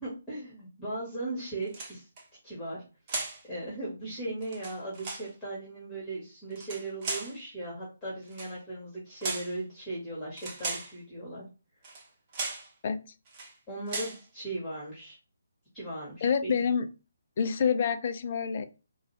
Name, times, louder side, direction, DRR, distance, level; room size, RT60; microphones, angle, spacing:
voice 1, 0.0-2.1 2.4-2.8 3.5-11.4 13.7-15.2 15.7-16.7, right 2 dB, 10° left, -7 dB, 1.8 m, -38 dB
sound 1, 1.7-2.2 3.1-3.4 4.4-5.3 6.5-7.4 8.3-8.5 9.2-9.6 10.4-10.9 11.8-12.1 12.3-12.7 13.3-13.5 13.9-14.2, right 3 dB, 25° right, 1.0 m, -36 dB
voice 2, 16.2-16.9 17.4-18.7, left 6 dB, 40° left, 9 dB, 0.5 m, -27 dB
4.7 x 2.4 x 3.3 m, 0.32 s
figure-of-eight pair, 145°, 0 cm